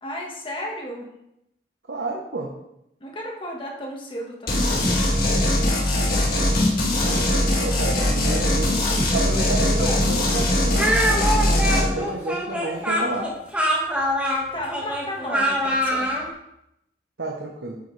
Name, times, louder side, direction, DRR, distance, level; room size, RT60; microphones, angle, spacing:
voice 1, 0.0-1.1 3.0-4.8 9.8-10.0 14.5-16.1, equal, 30° left, -1 dB, 1.6 m, -33 dB
voice 2, 1.9-2.5 6.7-8.8 9.1-10.9 11.7-13.3 17.2-17.7, right 2 dB, 75° right, 0 dB, 1.1 m, -30 dB
sound 1, 4.5-11.9, left 1 dB, 55° left, 2.3 m, -21 dB
Speech, 10.8-16.3, equal, 10° right, 1.7 m, -24 dB
9.1 x 8.4 x 3.3 m, 0.82 s
head